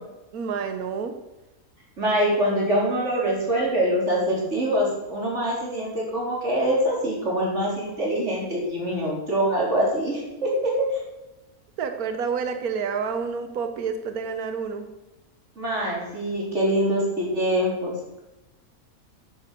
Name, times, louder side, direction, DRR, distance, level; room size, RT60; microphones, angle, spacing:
voice 1, 0.3-1.1 11.8-14.9, right 6 dB, 75° right, 7 dB, 1.4 m, -29 dB
voice 2, 2.0-11.0 15.6-17.9, right 1 dB, 50° right, -3 dB, 4.4 m, -24 dB
10.0 x 9.0 x 6.9 m, 1.0 s
omnidirectional pair, 1.6 m